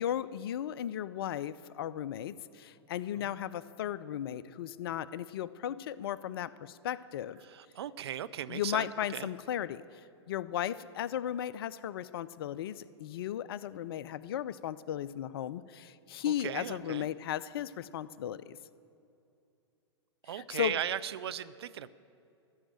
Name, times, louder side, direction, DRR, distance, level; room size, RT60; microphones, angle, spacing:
voice 1, 0.0-7.4 8.5-9.8 10.3-18.6 20.3-20.8, left 11 dB, 55° left, 17 dB, 0.4 m, -36 dB
voice 2, 7.5-9.3 16.4-17.1 20.2-21.9, right 10 dB, 60° right, 15 dB, 0.4 m, -37 dB
13.5 x 6.3 x 8.8 m, 2.6 s
figure-of-eight pair, 105°, 15 cm